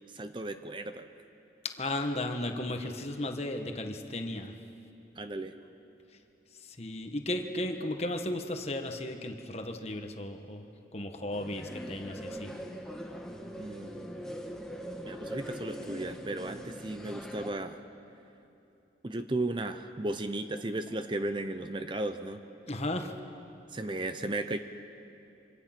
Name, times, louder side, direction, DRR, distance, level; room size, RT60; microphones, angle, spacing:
voice 1, 0.1-1.1 5.2-5.5 13.6-14.2 15.0-17.8 19.0-22.4 23.7-24.6, right 2 dB, 25° right, 9 dB, 0.6 m, -35 dB
voice 2, 1.8-4.5 6.8-10.7 10.9-12.5 22.7-23.1, left 1 dB, 35° left, 5 dB, 1.3 m, -35 dB
sound 1, 11.3-17.5, equal, 5° left, 1.3 m, -41 dB
25.5 x 25.0 x 6.0 m, 2.8 s
head